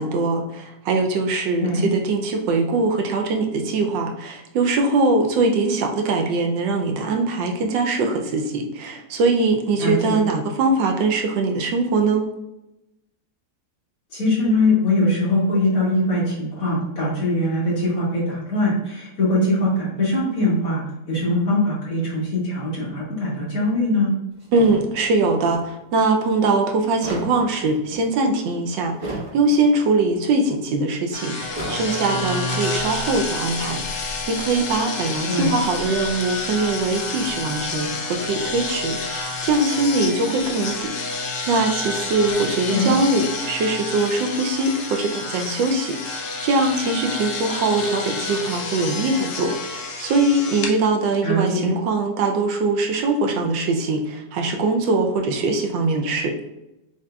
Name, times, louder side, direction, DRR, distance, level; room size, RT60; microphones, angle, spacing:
voice 1, 0.0-12.2 24.5-56.4, right 3 dB, 75° right, 3 dB, 1.3 m, -22 dB
voice 2, 9.8-10.2 14.1-24.1 35.3-35.6 42.7-42.9 51.2-51.7, left 1 dB, 50° left, -7 dB, 2.1 m, -22 dB
sound 1, 24.4-25.6 26.7-28.0 28.8-29.8 30.1-30.2 31.4-32.4, right 1 dB, 20° right, 0.9 m, -34 dB
sound 2, 31.1-50.7, left 3 dB, 75° left, 0.6 m, -29 dB
7.3 x 2.8 x 2.3 m, 0.92 s
omnidirectional pair, 2.0 m